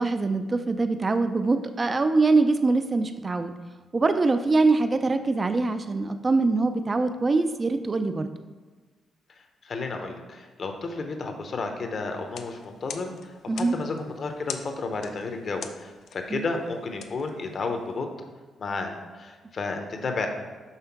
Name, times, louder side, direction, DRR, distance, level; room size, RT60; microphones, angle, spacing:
voice 1, 0.0-3.5 3.9-8.3 13.5-13.8 16.3-16.4, right 3 dB, 25° right, 9 dB, 0.3 m, -23 dB
voice 2, 9.6-18.1 18.6-20.3, left 3 dB, 45° left, 4 dB, 0.8 m, -32 dB
sound 1, 12.2-18.0, left 7 dB, 75° left, 0.4 m, -44 dB
5.6 x 3.7 x 5.8 m, 1.3 s
cardioid pair, 125°, 0 cm